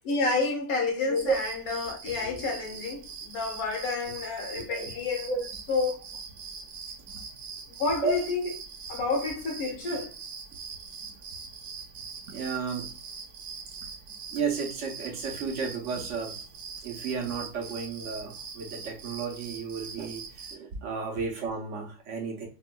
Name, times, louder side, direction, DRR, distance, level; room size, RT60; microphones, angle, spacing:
voice 1, 0.1-5.3 5.7-6.0 7.8-8.5 8.9-10.1, left 3 dB, 80° left, 1.2 m, -29 dB
voice 2, 1.0-1.4 4.7-5.5 7.1-7.2 8.0-8.1 11.0-11.2 12.3-12.9 14.3-16.4 16.8-22.5, right 5 dB, 65° right, 0.9 m, -33 dB
sound 1, 1.1-20.5, right 5 dB, 85° right, 1.2 m, -42 dB
4.2 x 2.2 x 2.2 m
omnidirectional pair, 1.5 m